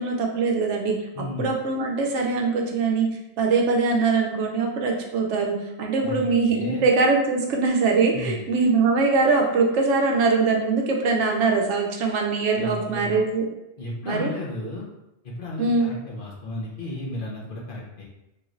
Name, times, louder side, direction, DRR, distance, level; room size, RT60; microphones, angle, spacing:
voice 1, 0.0-1.1 1.4-3.1 3.4-13.5 14.0-14.3 15.6-15.9, right 4 dB, 85° right, 1 dB, 0.9 m, -22 dB
voice 2, 1.1-1.5 6.0-6.8 8.1-8.4 12.5-13.2 13.8-14.9 15.2-18.0, left 1 dB, 55° left, -3 dB, 0.8 m, -34 dB
3.1 x 3.0 x 2.5 m, 0.91 s
omnidirectional pair, 1.2 m